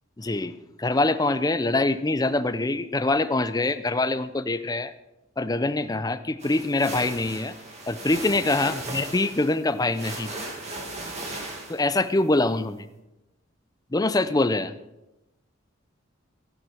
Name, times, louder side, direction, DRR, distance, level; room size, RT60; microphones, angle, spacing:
voice 1, 0.2-0.5 0.8-4.9 5.4-7.5 7.9-10.3 11.7-12.9 13.9-14.7, left 2 dB, 20° left, 13 dB, 0.5 m, -24 dB
sound 1, 6.4-12.0, right 2 dB, 35° right, 2.4 m, -37 dB
15.0 x 11.0 x 4.5 m, 0.97 s
head